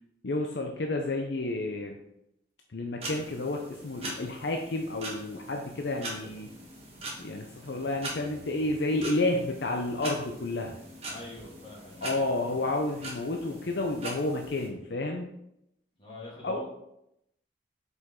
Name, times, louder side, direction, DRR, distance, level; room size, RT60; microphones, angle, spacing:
voice 1, 0.2-2.0 2.7-6.5 7.2-10.8 12.0-15.3 16.4-16.6, left 2 dB, 65° left, 2 dB, 0.6 m, -30 dB
voice 2, 3.0-3.3 11.1-12.6 16.0-16.6, left 2 dB, 30° left, -6 dB, 2.3 m, -46 dB
sound 1, 3.0-14.7, right 2 dB, 30° right, 1.6 m, -42 dB
6.2 x 5.1 x 3.8 m, 0.81 s
head